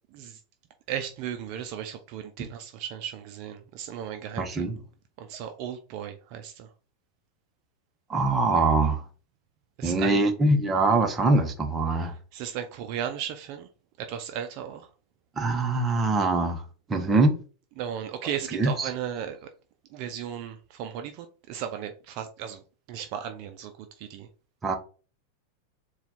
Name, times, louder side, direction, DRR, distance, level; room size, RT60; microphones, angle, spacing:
voice 1, 0.9-4.6 5.2-6.7 9.8-10.2 12.3-13.7 14.0-14.9 17.8-19.5 19.9-22.6 22.9-24.3, right 9 dB, 55° right, 0.5 m, -35 dB
voice 2, 4.4-4.8 8.1-9.0 9.8-12.1 15.4-16.6 16.9-17.3 18.5-18.9 24.6-24.7, right 2 dB, 20° right, 0.9 m, -23 dB
4.2 x 2.3 x 4.1 m
hypercardioid pair, 115°, 0 cm